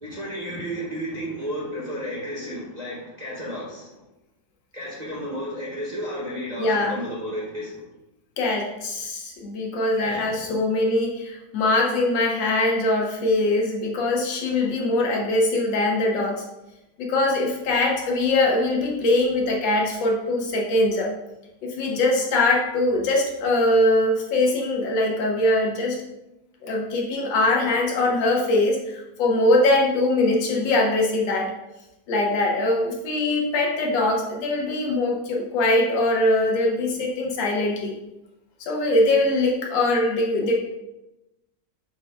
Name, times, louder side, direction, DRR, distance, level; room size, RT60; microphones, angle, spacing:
voice 1, 0.0-3.9 4.7-7.8 10.0-10.6, equal, 30° right, -7 dB, 0.7 m, -32 dB
voice 2, 6.6-7.0 8.4-16.4 17.0-21.1 21.6-26.0 26.6-31.5 32.1-37.9 38.6-40.5, left 2 dB, 75° left, -1 dB, 1.5 m, -22 dB
6.3 x 2.2 x 3.5 m, 0.95 s
omnidirectional pair, 2.1 m